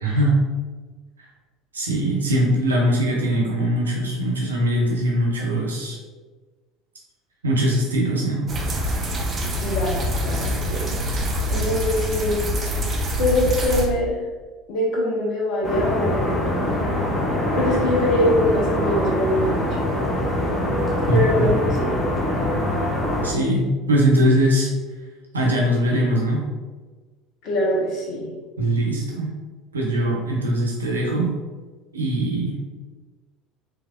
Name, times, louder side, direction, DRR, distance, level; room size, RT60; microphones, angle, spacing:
voice 1, 0.0-0.4 1.7-6.0 7.4-8.5 21.1-21.6 23.2-24.7 25.3-26.5 28.6-29.3 29.7-31.3 31.9-32.8, right 1 dB, 80° right, -3 dB, 0.6 m, -21 dB
sound 1, 8.5-13.9, equal, 30° right, 0.6 m, -25 dB
voice 2, 9.6-11.0 11.5-12.5 13.2-14.2 14.7-16.3 17.5-19.7 21.1-21.9 27.4-28.3, left 1 dB, 50° left, -3 dB, 0.9 m, -23 dB
sound 2, 15.6-23.3, left 1 dB, 10° left, 0.9 m, -23 dB
3.3 x 3.2 x 2.4 m, 1.3 s
figure-of-eight pair, 65°, 0 cm